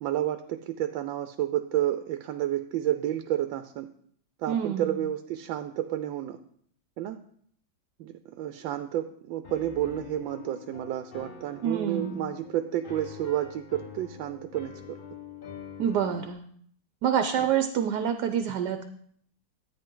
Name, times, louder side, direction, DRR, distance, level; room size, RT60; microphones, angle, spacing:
voice 1, 0.0-3.9 4.4-6.4 7.0-7.2 8.0-15.0 17.4-17.5, right 12 dB, 85° right, 9 dB, 1.3 m, -30 dB
voice 2, 4.5-4.9 11.6-12.2 15.8-16.4 17.0-18.8, right 8 dB, 65° right, 7 dB, 1.2 m, -27 dB
Piano, 9.4-16.3, left 6 dB, 55° left, 0.5 m, -45 dB
13.0 x 9.2 x 3.8 m, 0.63 s
omnidirectional pair, 2.1 m